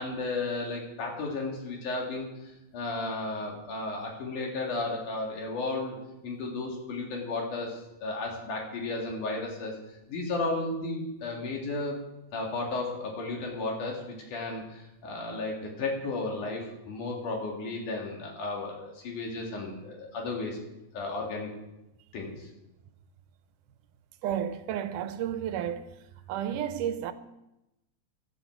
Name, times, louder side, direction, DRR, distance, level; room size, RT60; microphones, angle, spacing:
voice 1, 0.0-6.0 6.2-9.8 10.1-12.0 12.3-20.6 20.9-21.5 22.1-22.5, left 3 dB, 75° left, 3.7 m, -34 dB
voice 2, 24.2-25.9 26.3-27.1, right 10 dB, 85° right, 2.3 m, -31 dB
16.5 x 12.0 x 4.6 m
omnidirectional pair, 3.6 m